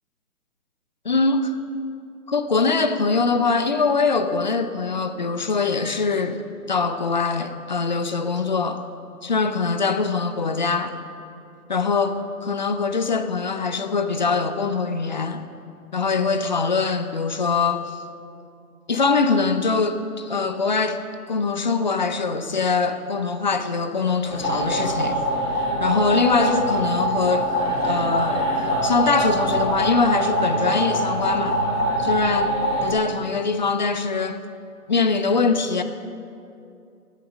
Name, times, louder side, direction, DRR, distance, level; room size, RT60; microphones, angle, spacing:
voice 1, 1.0-1.5 2.3-6.4 6.7-8.8 9.2-10.9 11.7-15.4 15.9-18.0 18.9-21.0 21.3-25.2 25.8-27.4 27.8-31.6 32.0-34.4 34.9-35.8, left 4 dB, 30° left, 0.6 m, -23 dB
sound 1, 24.3-32.9, right 1 dB, 90° left, 4.0 m, -23 dB
15.0 x 11.0 x 6.2 m
figure-of-eight pair, 145°, 45 cm